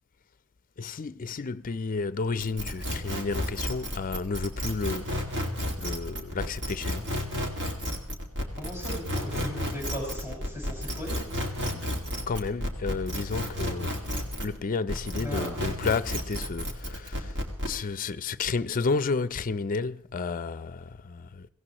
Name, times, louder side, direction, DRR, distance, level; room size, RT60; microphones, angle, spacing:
voice 1, 0.8-5.2 5.8-7.1 11.7-11.9 12.3-14.1 14.4-17.3 17.7-21.5, left 4 dB, 40° left, 0.5 m, -31 dB
sound 1, 2.4-14.6 14.9-17.8, left 1 dB, 55° right, 2.0 m, -32 dB
voice 2, 8.5-11.2 15.2-15.5, equal, 10° right, 5.6 m, -37 dB
23.0 x 16.5 x 3.0 m
head